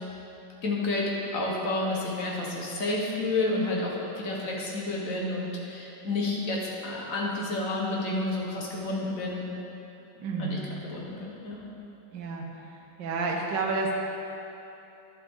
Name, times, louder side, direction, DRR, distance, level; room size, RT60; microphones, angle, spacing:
voice 1, 0.6-9.4 10.4-11.6, left 2 dB, 45° left, -3 dB, 1.7 m, -30 dB
voice 2, 10.2-10.7 12.1-13.9, right 3 dB, 70° right, 0 dB, 1.6 m, -31 dB
11.0 x 7.4 x 3.8 m, 2.9 s
omnidirectional pair, 2.1 m